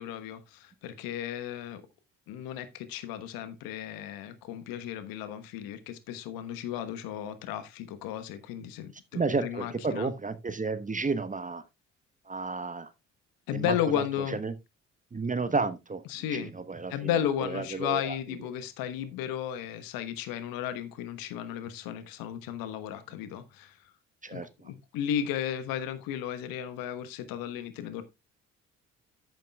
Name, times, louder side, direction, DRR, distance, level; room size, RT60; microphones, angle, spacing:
voice 1, 0.0-1.8 2.3-10.1 13.5-14.4 16.1-16.5 16.9-23.8 24.3-28.0, left 10 dB, 65° left, 1.2 m, -34 dB
voice 2, 9.1-11.6 12.3-12.9 13.5-14.5 15.1-16.0 16.3-17.1 17.4-18.2 24.2-24.7, right 4 dB, 20° right, 1.1 m, -32 dB
12.5 x 9.1 x 2.3 m
figure-of-eight pair, 45°, 37 cm